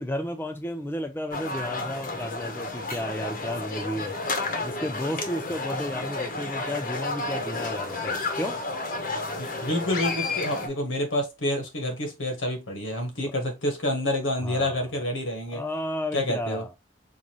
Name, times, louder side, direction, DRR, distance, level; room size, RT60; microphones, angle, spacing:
voice 1, 0.0-4.2 4.6-8.6 14.4-14.9 15.5-16.7, left 1 dB, 10° left, 0.3 m, -33 dB
sound 1, 1.3-10.7, left 3 dB, 45° left, 0.9 m, -31 dB
voice 2, 9.4-15.6 16.1-16.6, left 1 dB, 85° left, 1.3 m, -28 dB
4.7 x 2.6 x 2.9 m
head